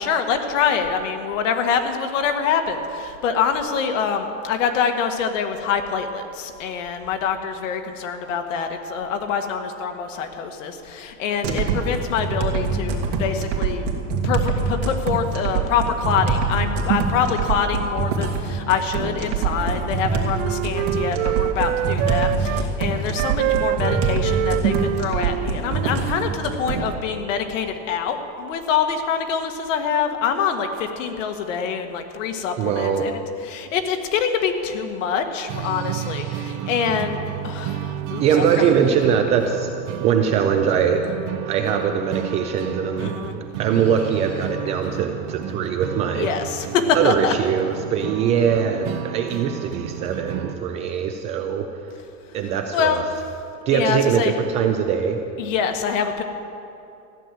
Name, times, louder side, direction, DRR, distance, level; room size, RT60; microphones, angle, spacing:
voice 1, 0.0-13.9 14.2-33.2 33.4-37.2 37.4-38.7 43.0-43.3 44.8-45.0 46.1-47.3 52.7-53.0 53.7-54.3 55.4-56.2, left 6 dB, 75° left, 6 dB, 1.7 m, -25 dB
sound 1, 11.4-26.9, right 5 dB, 65° right, 2.4 m, -24 dB
Wind instrument woodwind instrument, 19.5-22.7 23.1-26.3, right 13 dB, 85° right, 0.6 m, -26 dB
voice 2, 32.6-33.1 38.2-39.7 40.0-41.1 41.4-43.1 43.6-46.3 46.9-51.7 52.3-53.0 53.7-55.2, right 7 dB, 20° right, 5 dB, 0.3 m, -21 dB
sound 2, 35.5-50.6, right 10 dB, 40° right, 0.9 m, -32 dB
14.5 x 10.5 x 7.6 m, 2.6 s
supercardioid pair, 160°, 39 cm